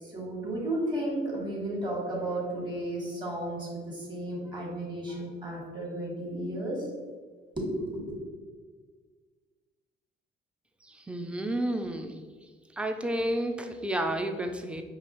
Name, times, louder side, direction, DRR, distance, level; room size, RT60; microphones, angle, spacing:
voice 1, 0.0-6.9 7.6-8.1, right 1 dB, 20° right, -2 dB, 1.4 m, -33 dB
voice 2, 10.8-12.2 12.7-14.8, right 1 dB, 5° right, 6 dB, 0.4 m, -31 dB
5.1 x 2.7 x 2.9 m, 1.5 s
cardioid pair, 90°, 20 cm